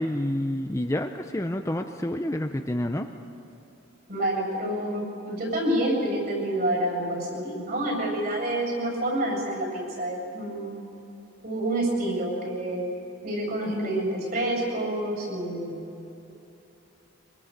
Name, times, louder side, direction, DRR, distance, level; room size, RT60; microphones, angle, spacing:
voice 1, 0.0-3.1, left 1 dB, 15° left, 6 dB, 0.6 m, -28 dB
voice 2, 4.1-10.7 11.4-12.9 13.2-15.9, right 1 dB, 45° right, 0 dB, 7.5 m, -28 dB
24.0 x 24.0 x 6.7 m, 2.8 s
head